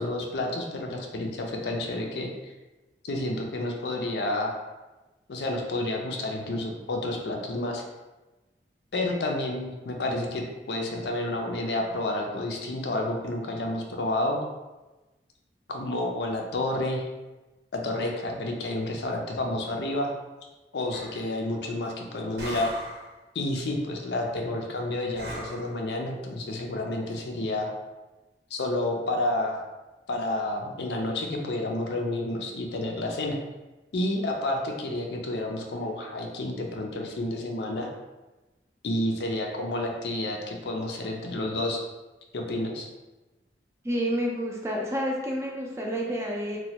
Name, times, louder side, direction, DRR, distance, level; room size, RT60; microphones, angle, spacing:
voice 1, 0.0-2.5 3.0-4.6 5.3-7.8 8.9-14.4 15.7-17.0 17.7-20.1 20.7-22.7 23.3-27.7 28.5-29.6 30.1-33.4 33.9-37.9 38.8-41.8 42.3-42.9, left 1 dB, 75° left, 1 dB, 0.5 m, -30 dB
sound 1, 20.9-21.3 22.4-23.1 25.1-25.7, equal, 80° right, 0.7 m, -38 dB
voice 2, 43.8-46.6, equal, 15° right, -2 dB, 0.4 m, -29 dB
3.0 x 2.2 x 2.8 m, 1.1 s
head